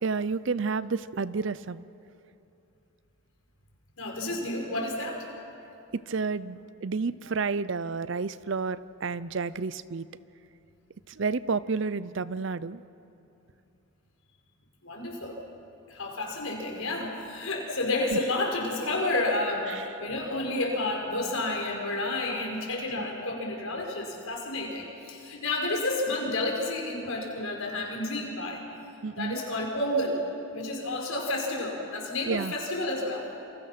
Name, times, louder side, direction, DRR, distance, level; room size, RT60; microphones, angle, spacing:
voice 1, 0.0-1.8 5.9-10.1 11.2-12.8 23.0-23.1 29.0-29.4 32.3-32.5, right 4 dB, 55° right, 17 dB, 0.5 m, -30 dB
voice 2, 4.0-5.3 14.8-15.4 15.9-28.6 29.2-30.2 30.5-33.3, left 2 dB, 70° left, 0 dB, 5.2 m, -30 dB
28.5 x 26.5 x 5.9 m, 2.8 s
head